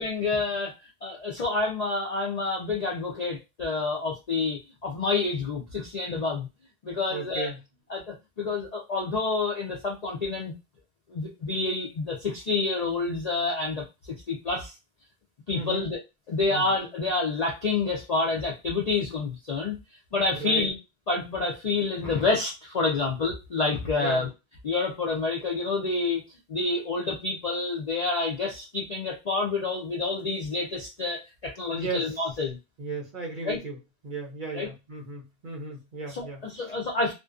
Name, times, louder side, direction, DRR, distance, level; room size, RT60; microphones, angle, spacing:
voice 1, 0.0-6.5 6.8-7.5 7.9-10.6 11.1-14.7 15.5-16.0 16.3-19.8 20.1-20.8 21.1-24.3 24.6-32.6 33.4-33.6 34.5-34.7 36.1-37.1, left 3 dB, 60° left, -1 dB, 0.4 m, -28 dB
voice 2, 7.1-7.6 15.5-15.9 16.5-16.7 20.4-20.7 24.0-24.3 31.7-32.2 32.8-33.8 34.0-36.4, right 3 dB, 55° right, 0 dB, 0.6 m, -35 dB
2.5 x 2.2 x 2.4 m, 0.26 s
omnidirectional pair, 1.3 m